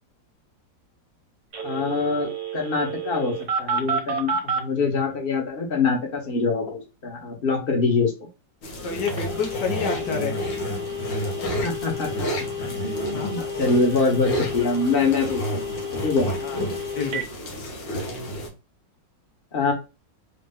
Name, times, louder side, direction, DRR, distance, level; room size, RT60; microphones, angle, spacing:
Telephone, 1.5-4.6 9.1-17.2, right 1 dB, 65° right, 1.4 m, -31 dB
voice 1, 1.6-8.1 11.6-12.4 12.8-16.3 19.5-19.7, left 4 dB, 35° left, 0 dB, 1.4 m, -24 dB
sound 1, 8.6-18.5, equal, 90° left, 1.9 m, -31 dB
voice 2, 8.8-10.4 13.1-13.5 16.4-16.6 17.0-17.3, left 6 dB, 75° left, 1 dB, 1.4 m, -29 dB
4.2 x 2.4 x 3.7 m, 0.28 s
omnidirectional pair, 1.9 m